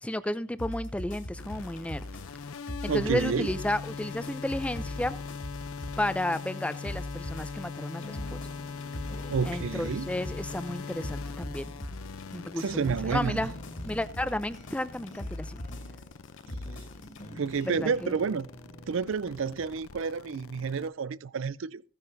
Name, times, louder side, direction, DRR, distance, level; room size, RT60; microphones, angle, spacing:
voice 1, 0.0-2.0 2.8-5.1 6.0-8.4 9.4-11.7 12.3-13.5 13.8-15.6 17.3-18.2, left 1 dB, 5° left, 0.4 m, -32 dB
sound 1, 0.6-17.2, left 1 dB, 70° left, 2.6 m, -41 dB
sound 2, 1.4-20.9, left 5 dB, 85° left, 0.6 m, -42 dB
voice 2, 2.9-3.5 9.3-10.1 12.5-13.5 17.3-18.5 18.9-21.8, right 5 dB, 70° right, 0.4 m, -30 dB
sound 3, 7.8-18.9, left 1 dB, 35° left, 1.8 m, -49 dB
15.5 x 10.0 x 2.6 m
head